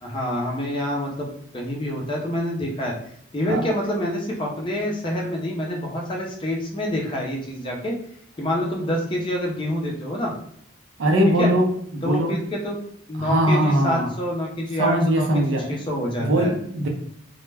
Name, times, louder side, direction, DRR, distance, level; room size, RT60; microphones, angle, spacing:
voice 1, 0.0-1.3 1.5-2.9 3.3-7.9 8.4-10.3 11.4-11.5 12.0-12.8 13.1-16.5, equal, 25° left, -2 dB, 0.5 m, -27 dB
voice 2, 11.0-12.3 13.2-14.1 14.8-15.6 16.2-16.9, right 1 dB, 80° right, 1 dB, 0.6 m, -21 dB
2.2 x 2.1 x 3.2 m, 0.68 s
head